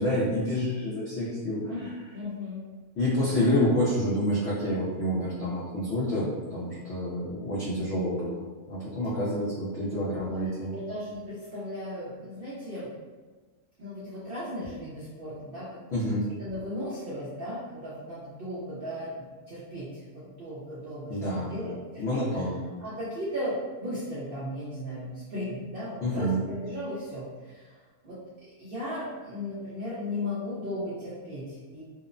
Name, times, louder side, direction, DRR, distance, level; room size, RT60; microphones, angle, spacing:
voice 1, 0.0-1.6 3.0-8.4 8.7-10.7 15.9-16.2 21.1-21.6 22.0-22.6 26.0-26.4, left 1 dB, 65° left, -8 dB, 0.7 m, -28 dB
voice 2, 1.7-2.6 10.1-12.9 13.8-15.8 16.1-22.2 22.8-27.7 28.0-28.2 28.6-31.8, left 1 dB, 70° right, -10 dB, 0.5 m, -36 dB
2.8 x 2.0 x 2.4 m, 1.3 s
omnidirectional pair, 1.7 m